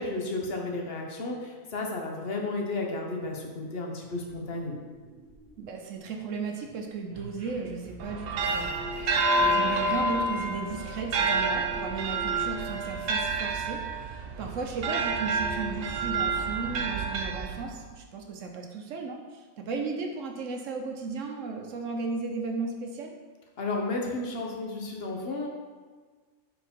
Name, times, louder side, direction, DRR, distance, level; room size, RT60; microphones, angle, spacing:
voice 1, 0.0-4.7 23.6-25.5, left 2 dB, 50° left, 0 dB, 1.0 m, -33 dB
sound 1, 4.3-6.0 6.3-9.7, right 2 dB, 35° right, 1.5 m, -47 dB
voice 2, 5.6-23.1, right 4 dB, 65° right, 2 dB, 1.0 m, -35 dB
sound 2, 8.0-17.9, right 3 dB, 80° right, 0.5 m, -29 dB
4.5 x 4.5 x 5.2 m, 1.4 s
omnidirectional pair, 1.5 m